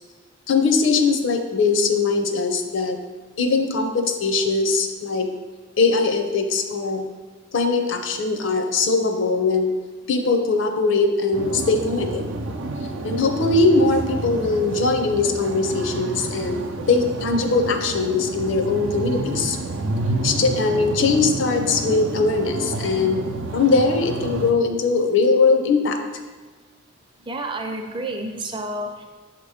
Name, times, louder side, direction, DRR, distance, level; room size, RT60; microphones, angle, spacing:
voice 1, 0.5-3.0 3.4-5.3 5.8-7.0 7.5-9.7 10.1-12.2 13.0-16.6 16.9-19.6 20.2-23.2 23.5-26.0, left 3 dB, 75° left, 5 dB, 0.6 m, -21 dB
sound 1, 11.3-24.5, right 2 dB, 80° right, 0.5 m, -29 dB
voice 2, 27.2-29.0, right 1 dB, 25° right, 3 dB, 0.5 m, -30 dB
6.8 x 2.9 x 4.9 m, 1.3 s
head